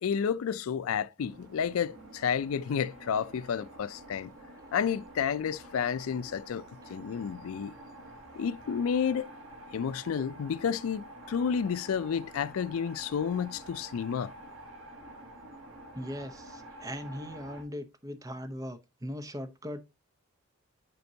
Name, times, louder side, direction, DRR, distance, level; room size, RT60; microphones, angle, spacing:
voice 1, 0.0-4.3 4.7-6.6 6.9-7.7 8.4-9.3 9.7-14.3, left 7 dB, 75° left, 0.4 m, -31 dB
sound 1, 1.2-17.6, right 1 dB, 70° right, 2.2 m, -49 dB
voice 2, 15.9-19.8, equal, 15° right, 0.7 m, -39 dB
9.5 x 4.4 x 2.7 m
head